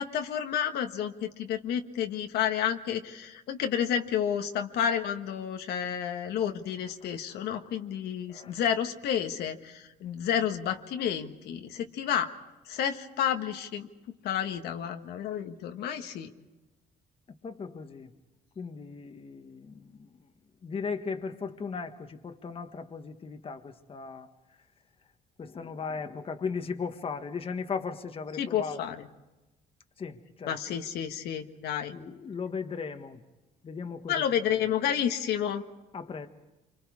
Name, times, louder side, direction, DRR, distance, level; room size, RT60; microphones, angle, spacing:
voice 1, 0.0-12.3 12.7-13.9 14.2-16.3 28.4-29.0 30.4-31.9 34.1-35.6, left 9 dB, 75° left, 5 dB, 1.5 m, -30 dB
voice 2, 8.3-8.6 17.4-18.1 18.6-20.1 20.6-24.3 25.4-28.8 30.0-30.6 31.9-33.2 33.6-34.2 35.9-36.3, left 5 dB, 35° left, 6 dB, 1.5 m, -37 dB
28.0 x 25.0 x 4.9 m, 1.1 s
cardioid pair, 110°, 17 cm